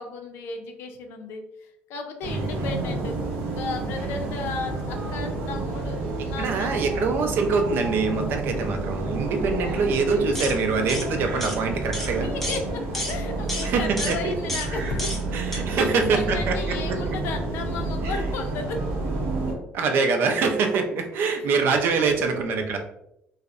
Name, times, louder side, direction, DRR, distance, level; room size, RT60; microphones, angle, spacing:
voice 1, 0.0-6.9 11.6-11.8 12.2-15.2 15.5-18.9 19.5-19.6 21.3-21.6 22.0-22.8, left 4 dB, 75° left, 4 dB, 0.4 m, -35 dB
voice 2, 2.2-2.7 6.4-12.3 13.6-14.3 15.3-17.2 18.0-18.1 19.7-22.8, right 4 dB, 65° right, 4 dB, 0.4 m, -24 dB
sound 1, 2.2-19.5, right 2 dB, 80° right, 0.8 m, -30 dB
sound 2, 10.3-10.6 10.9-11.1 11.4-11.6 11.9-12.1 12.4-12.6 12.9-13.2 13.5-13.7 14.0-14.2 14.5-14.7 15.0-15.2 15.5-15.6, left 1 dB, 5° left, 0.6 m, -30 dB
2.6 x 2.0 x 2.4 m, 0.78 s
cardioid pair, 120°, 4 cm